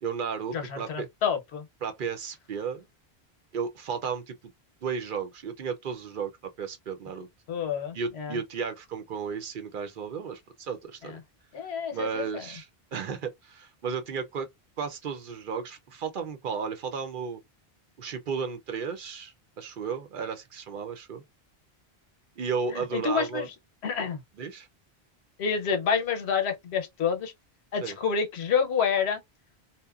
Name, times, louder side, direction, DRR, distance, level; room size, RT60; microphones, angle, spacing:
voice 1, 0.0-1.1 1.8-2.9 3.5-4.5 4.8-6.3 6.6-7.3 7.9-11.2 11.9-14.5 14.8-17.4 18.0-21.2 22.4-23.5 24.4-24.7 27.8-28.0, right 6 dB, 60° right, 0.7 m, -34 dB
voice 2, 0.5-1.6 7.5-8.4 11.5-12.4 22.7-23.5 23.8-24.2 25.4-27.3 27.7-29.2, left 6 dB, 85° left, 1.0 m, -28 dB
2.8 x 2.1 x 2.3 m
omnidirectional pair, 1.1 m